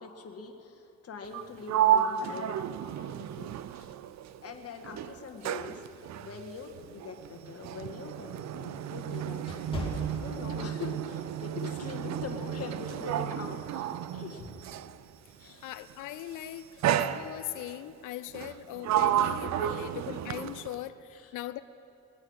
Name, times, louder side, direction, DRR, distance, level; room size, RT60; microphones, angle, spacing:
voice 1, 0.0-2.5 3.4-3.9 4.4-5.8 6.2-9.4 10.2-14.5 15.4-15.6 16.7-16.9 18.4-18.5 19.7-19.9 21.1-21.4, left 5 dB, 50° left, 4 dB, 1.8 m, -43 dB
Sliding door, 1.2-4.5 4.8-15.0 15.9-16.2 16.8-17.7 18.3-20.9, right 10 dB, 65° right, 0.6 m, -32 dB
sound 1, 7.3-10.9 11.4-11.6 12.2-12.5, left 1 dB, 20° left, 2.9 m, -40 dB
voice 2, 15.6-21.6, left 13 dB, 85° left, 12 dB, 0.6 m, -40 dB
21.0 x 8.8 x 6.4 m, 2.7 s
cardioid pair, 90°, 30 cm